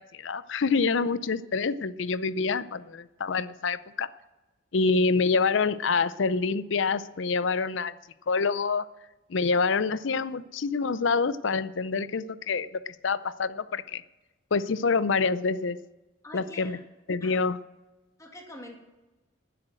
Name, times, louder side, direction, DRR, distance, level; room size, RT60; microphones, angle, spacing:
voice 1, 0.0-4.1 4.7-7.9 8.3-8.9 9.3-14.0 14.5-15.8 16.3-16.8 17.1-17.6, left 4 dB, 65° left, 16 dB, 0.5 m, -26 dB
voice 2, 16.2-16.8 17.2-17.4 18.2-18.8, left 1 dB, 15° left, 1 dB, 2.4 m, -44 dB
12.5 x 10.0 x 7.7 m, 1.1 s
head